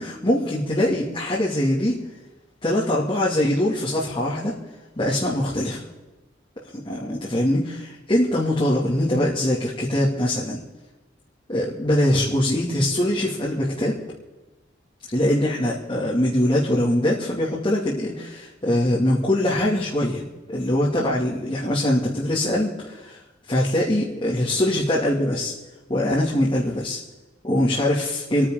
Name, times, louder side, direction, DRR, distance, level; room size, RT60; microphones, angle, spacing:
voice 1, 0.0-2.0 2.6-4.6 5.0-5.8 6.7-10.6 11.5-14.0 15.1-20.2 20.5-23.2 23.5-25.5 25.9-27.0 27.4-28.5, left 1 dB, 25° left, -7 dB, 2.4 m, -22 dB
28.0 x 10.0 x 3.8 m, 1.1 s
head